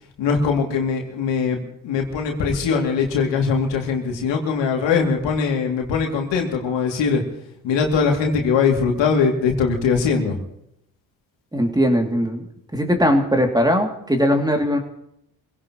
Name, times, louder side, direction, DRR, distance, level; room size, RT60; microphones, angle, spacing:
voice 1, 0.2-7.2 7.6-10.4, left 5 dB, 70° left, 1 dB, 2.8 m, -21 dB
voice 2, 11.5-12.5 12.7-14.8, equal, 10° right, 3 dB, 2.7 m, -19 dB
26.0 x 17.0 x 3.1 m, 0.76 s
hypercardioid pair, 50°, 46 cm